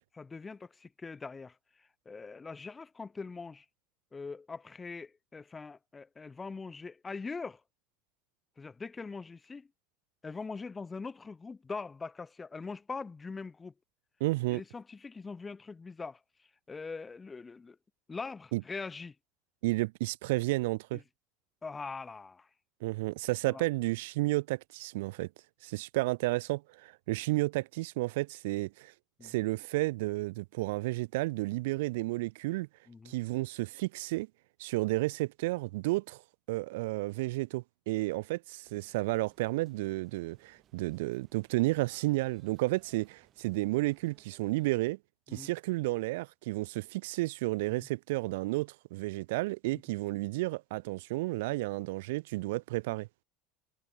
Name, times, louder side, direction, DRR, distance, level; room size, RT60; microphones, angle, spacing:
voice 1, 0.1-3.6 4.1-7.6 8.6-9.7 10.2-13.7 14.5-17.8 18.1-19.1 20.9-21.0 21.6-22.5 23.4-23.6 29.2-29.3 32.9-33.1 45.3-45.5 47.7-47.9 49.7-49.8, left 4 dB, 15° left, 1.7 m, -42 dB
voice 2, 14.2-14.6 18.5-18.6 19.6-21.0 22.8-25.3 25.6-28.9 29.2-32.7 33.1-34.3 34.6-36.2 36.5-45.0 45.3-53.1, right 21 dB, 85° right, 0.6 m, -32 dB
sound 1, 38.6-44.7, right 11 dB, 35° right, 6.0 m, -65 dB
cardioid pair, 155°, 0 cm